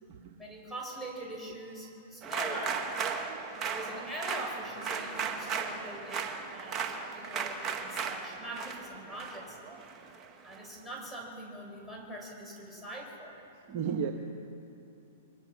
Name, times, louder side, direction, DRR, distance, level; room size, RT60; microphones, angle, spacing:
voice 1, 0.4-3.0 3.5-9.6 10.4-13.4, right 1 dB, ahead, -2 dB, 6.5 m, -43 dB
sound 1, 2.2-10.6, right 6 dB, 25° right, 1.9 m, -36 dB
voice 2, 13.7-14.1, right 7 dB, 50° right, 3 dB, 1.6 m, -33 dB
28.5 x 23.0 x 6.3 m, 2.8 s
hypercardioid pair, 125°, 0 cm